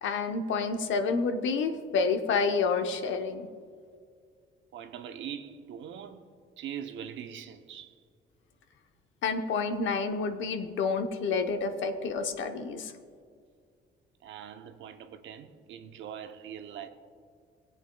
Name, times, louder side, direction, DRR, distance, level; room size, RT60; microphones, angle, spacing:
voice 1, 0.0-3.5 9.2-12.9, left 4 dB, 75° left, 0.9 m, -29 dB
voice 2, 4.7-6.2 6.6-7.9 14.2-16.9, right 9 dB, 75° right, 0.7 m, -42 dB
18.5 x 8.2 x 2.3 m
cardioid pair, 90°, 20 cm